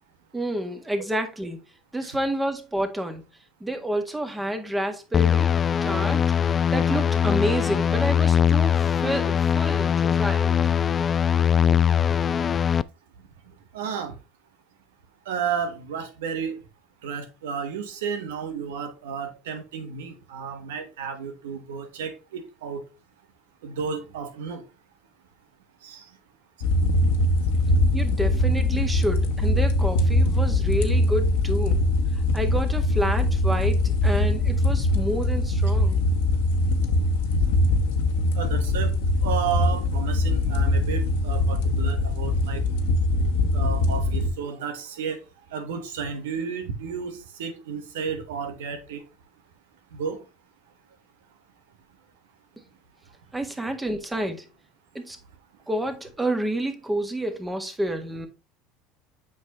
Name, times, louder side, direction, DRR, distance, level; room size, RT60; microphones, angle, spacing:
voice 1, 0.3-1.6 1.9-3.2 3.6-6.2 6.7-10.6 27.9-31.8 32.3-36.0 53.3-54.5 55.0-55.2 55.7-58.3, right 1 dB, 10° right, 1.7 m, -29 dB
sound 1, 5.1-12.8, left 8 dB, 35° left, 0.3 m, -21 dB
voice 2, 13.7-14.1 15.3-16.6 17.0-22.8 23.6-24.6 25.8-26.0 38.3-38.9 39.2-42.6 43.5-45.2 45.5-49.0 49.9-50.2, right 6 dB, 80° right, 1.4 m, -32 dB
sound 2, 26.6-44.3, left 1 dB, 75° left, 1.2 m, -22 dB
7.9 x 5.3 x 3.1 m
hypercardioid pair, 80°, 0 cm